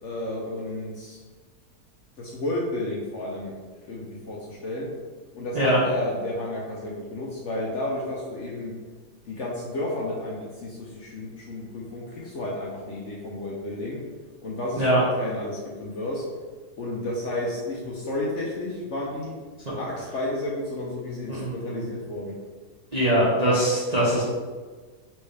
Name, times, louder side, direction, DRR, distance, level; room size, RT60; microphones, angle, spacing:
voice 1, 0.0-1.2 2.2-3.6 3.9-4.9 5.3-8.7 9.3-14.0 14.4-16.3 16.8-19.4 19.7-22.4, left 1 dB, 60° left, -4 dB, 0.8 m, -32 dB
voice 2, 21.3-21.8 22.9-24.2, right 1 dB, 35° right, -8 dB, 0.6 m, -22 dB
4.5 x 3.2 x 3.3 m, 1.4 s
omnidirectional pair, 1.7 m